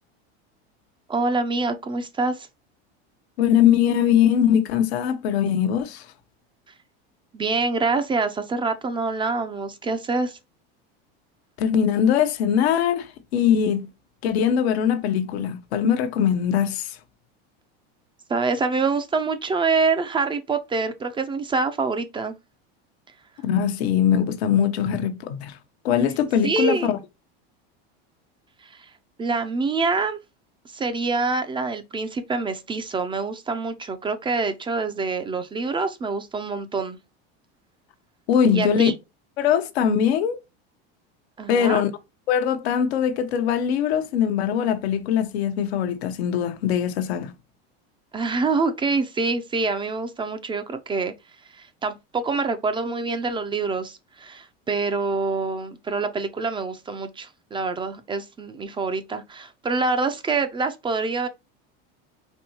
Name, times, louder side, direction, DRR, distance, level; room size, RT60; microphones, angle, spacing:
voice 1, 1.1-2.5 7.3-10.4 18.3-22.4 24.9-25.0 26.4-26.9 28.6-28.9 29.2-30.2 30.7-37.0 38.5-38.9 41.4-41.8 48.1-51.1 51.5-61.3, right 4 dB, 15° right, 0.4 m, -26 dB
voice 2, 3.4-6.1 11.6-13.9 14.2-17.0 23.4-25.6 25.8-27.0 38.3-38.9 39.4-40.4 41.5-41.9 42.3-47.3, left 8 dB, 85° left, 0.8 m, -21 dB
4.4 x 2.7 x 2.8 m
supercardioid pair, 120°, 31 cm